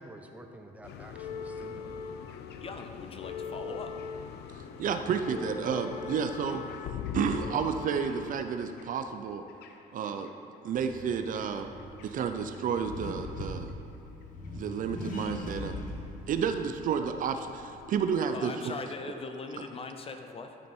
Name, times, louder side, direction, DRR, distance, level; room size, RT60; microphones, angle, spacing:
voice 1, 0.0-2.0, right 1 dB, 10° right, 3 dB, 0.9 m, -49 dB
sound 1, 0.8-10.3 11.2-12.3 12.5-12.8 13.7-13.8, left 6 dB, 75° left, 0.7 m, -41 dB
voice 2, 2.6-4.0 18.3-20.6, left 4 dB, 35° left, 6 dB, 0.7 m, -40 dB
voice 3, 4.8-6.6 7.1-9.4 9.9-10.3 10.6-11.7 12.0-13.7 14.5-15.8 16.3-18.7, right 7 dB, 55° right, 7 dB, 0.6 m, -31 dB
Accelerating revving vroom, 10.8-18.1, left 1 dB, 50° left, 1.6 m, -42 dB
12.0 x 6.4 x 4.5 m, 2.7 s
cardioid pair, 110°, 17 cm